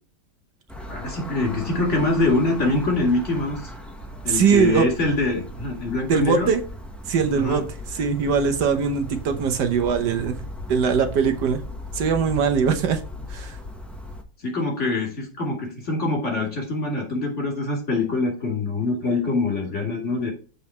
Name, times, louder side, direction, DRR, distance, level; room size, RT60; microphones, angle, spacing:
sound 1, 0.7-14.2, left 1 dB, ahead, 0.6 m, -37 dB
voice 1, 0.9-3.7 4.2-6.5 7.3-7.6 14.4-20.3, left 3 dB, 40° left, -1 dB, 2.7 m, -24 dB
voice 2, 4.2-4.9 6.1-6.6 7.1-7.6 7.9-10.4 10.7-11.6 11.9-13.0 13.3-13.6, right 6 dB, 70° right, 7 dB, 1.4 m, -21 dB
7.6 x 4.2 x 4.3 m, 0.37 s
omnidirectional pair, 1.9 m